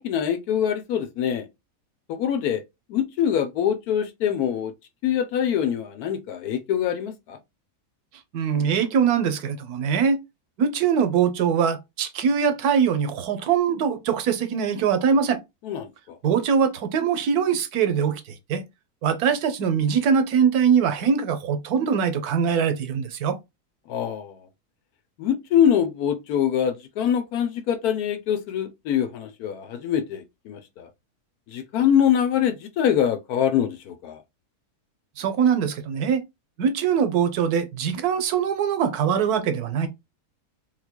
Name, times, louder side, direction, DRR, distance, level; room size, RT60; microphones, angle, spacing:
voice 1, 0.0-1.5 2.1-2.6 2.9-4.7 5.0-7.4 15.6-16.2 23.9-24.5 25.2-30.9 31.5-34.2, left 9 dB, 75° left, 1.2 m, -24 dB
voice 2, 8.3-10.2 10.6-15.4 16.2-18.2 18.5-18.6 19.0-23.4 35.2-36.2 36.6-39.9, right 7 dB, 80° right, 1.2 m, -22 dB
3.6 x 3.2 x 2.2 m
omnidirectional pair, 1.7 m